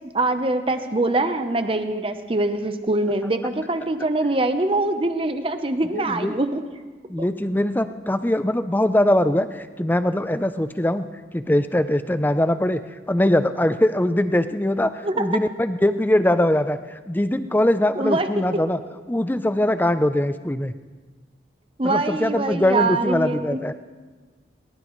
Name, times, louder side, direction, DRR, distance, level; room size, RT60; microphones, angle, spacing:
voice 1, 0.1-6.6 15.0-15.3 18.0-18.3 21.8-23.6, right 2 dB, 30° right, 8 dB, 0.9 m, -23 dB
voice 2, 5.9-6.4 7.1-11.1 11.3-18.8 19.1-20.7 21.8-23.8, left 1 dB, 10° left, 11 dB, 0.5 m, -22 dB
21.5 x 21.0 x 3.2 m, 1.4 s
head